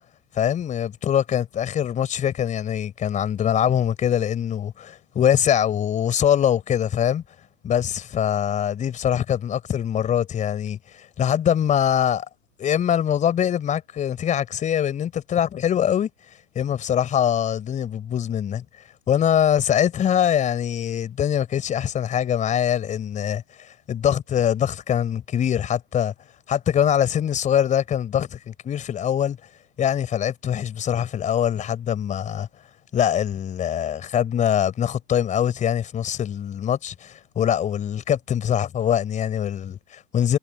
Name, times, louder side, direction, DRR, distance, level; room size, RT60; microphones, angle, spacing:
voice 1, 0.3-7.2 7.6-12.3 12.6-16.1 16.5-18.6 19.1-23.4 23.9-26.1 26.5-29.4 29.8-32.5 32.9-40.4, left 9 dB, 15° left, 4.2 m, -23 dB
figure-of-eight pair, 125°, 49 cm